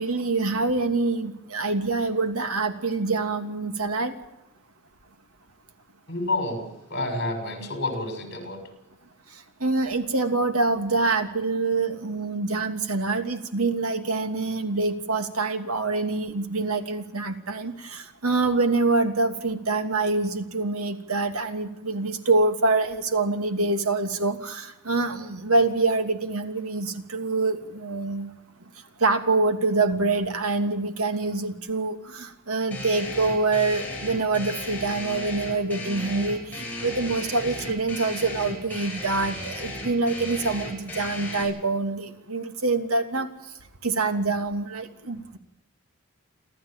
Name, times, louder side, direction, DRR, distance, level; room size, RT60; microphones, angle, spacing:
voice 1, 0.0-4.1 9.6-28.3 29.0-43.3 43.8-45.4, right 3 dB, 85° right, 6 dB, 2.8 m, -25 dB
voice 2, 6.1-8.6 37.4-37.5, left 2 dB, 50° left, 6 dB, 6.3 m, -29 dB
sound 1, 32.7-41.4, left 1 dB, 10° left, 7.8 m, -36 dB
29.5 x 13.5 x 9.0 m, 0.93 s
head